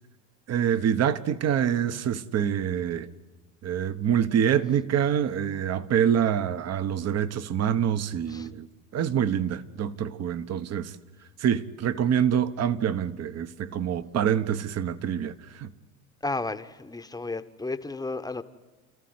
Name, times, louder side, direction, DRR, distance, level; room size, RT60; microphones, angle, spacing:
voice 1, 0.5-3.1 3.6-8.7 8.9-10.9 11.4-15.7, right 9 dB, 40° right, 1.2 m, -26 dB
voice 2, 16.2-18.4, left 3 dB, 10° left, 1.2 m, -33 dB
29.0 x 14.5 x 9.6 m
hypercardioid pair, 95°, 41 cm